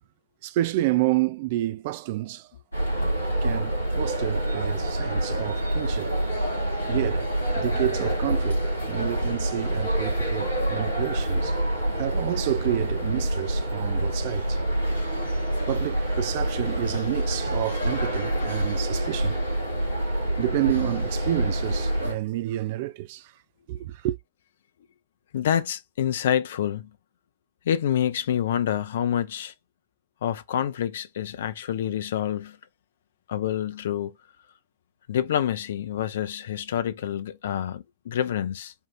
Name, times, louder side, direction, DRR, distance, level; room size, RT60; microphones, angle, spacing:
voice 1, 0.4-2.5 3.4-6.2 6.9-11.6 12.0-14.6 15.3-15.4 15.7-19.4 20.4-23.3 23.7-24.2, right 16 dB, 50° right, 0.4 m, -29 dB
sound 1, 2.7-22.1, right 1 dB, 85° right, 2.5 m, -26 dB
voice 2, 25.3-26.9 27.7-29.5 30.2-32.6 33.3-34.1 35.1-38.7, left 10 dB, 60° left, 0.5 m, -27 dB
4.4 x 2.4 x 3.6 m
figure-of-eight pair, 90°, 0 cm